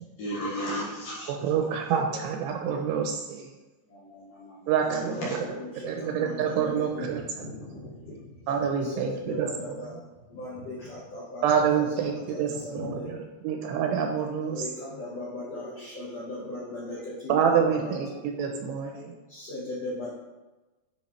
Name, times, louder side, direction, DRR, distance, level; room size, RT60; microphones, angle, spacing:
voice 1, 0.2-1.3 3.9-4.7 5.2-5.4, equal, 60° left, -7 dB, 2.7 m, -34 dB
voice 2, 1.3-3.5 4.7-5.4 5.8-7.2 8.5-9.5 11.4-13.2 13.4-14.6 17.3-18.1 18.4-19.1, right 7 dB, 85° right, 3 dB, 2.6 m, -27 dB
voice 3, 4.8-13.2 14.5-18.2 18.8-20.1, left 1 dB, 80° left, -7 dB, 1.4 m, -39 dB
10.0 x 4.8 x 3.2 m, 1.1 s
omnidirectional pair, 5.3 m